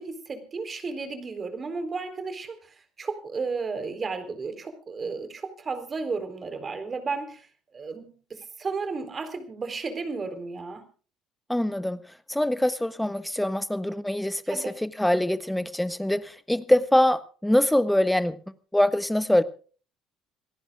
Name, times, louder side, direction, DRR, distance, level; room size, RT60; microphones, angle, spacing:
voice 1, 0.0-7.5 7.7-10.8 14.5-14.8, right 4 dB, 35° right, 9 dB, 3.8 m, -33 dB
voice 2, 11.5-12.0 12.3-18.4 18.7-19.4, left 1 dB, 5° left, 14 dB, 1.4 m, -24 dB
27.0 x 17.5 x 2.4 m, 0.39 s
hypercardioid pair, 60°, 0 cm